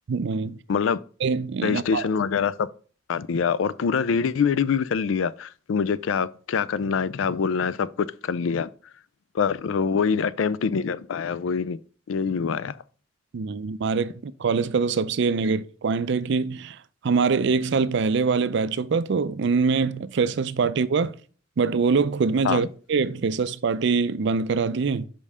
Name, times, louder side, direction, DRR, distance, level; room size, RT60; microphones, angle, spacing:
voice 1, 0.1-0.6 1.2-2.1 13.3-16.8 17.0-21.1 21.6-25.1, right 5 dB, 65° right, 0.4 m, -24 dB
voice 2, 1.6-2.7 3.1-8.7 9.3-11.8 12.1-12.8 22.4-22.6, left 6 dB, 90° left, 0.4 m, -25 dB
5.4 x 5.3 x 4.8 m
head